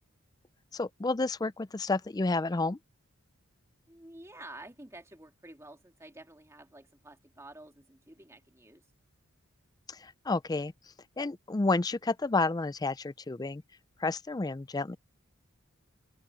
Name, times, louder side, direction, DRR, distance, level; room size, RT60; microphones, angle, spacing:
voice 1, 0.7-2.8 9.9-10.7 11.2-13.6 14.0-15.0, left 3 dB, 20° left, 0.4 m, -30 dB
voice 2, 3.9-8.9, right 1 dB, 15° right, 2.4 m, -50 dB
open air
head